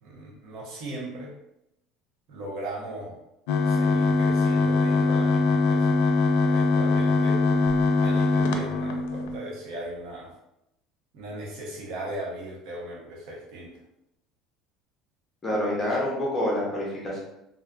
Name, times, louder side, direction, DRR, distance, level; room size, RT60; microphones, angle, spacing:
voice 1, 0.0-1.3 2.3-3.2 3.7-6.0 6.4-7.4 8.0-10.3 11.1-13.8, right 1 dB, 55° right, -3 dB, 0.7 m, -38 dB
sound 1, 3.5-9.4, left 3 dB, 85° left, 0.3 m, -22 dB
voice 2, 15.4-17.2, left 1 dB, 15° left, -5 dB, 0.7 m, -27 dB
2.5 x 2.4 x 2.2 m, 0.87 s
cardioid pair, 165°, 0 cm